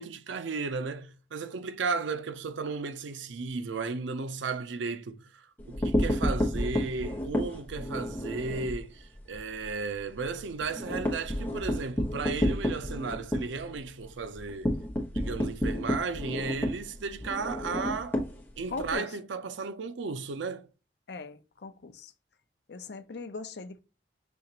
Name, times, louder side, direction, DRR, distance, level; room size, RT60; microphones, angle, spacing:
voice 1, 0.0-14.7 15.1-18.2 18.6-20.7, right 4 dB, 85° right, 0.5 m, -34 dB
sound 1, 5.6-8.8 9.2-9.4 9.7-9.8 10.1-18.9, equal, 10° left, 1.2 m, -30 dB
voice 2, 18.7-19.0 21.1-22.1 22.7-23.8, left 3 dB, 60° left, 0.5 m, -39 dB
6.2 x 2.8 x 2.7 m
head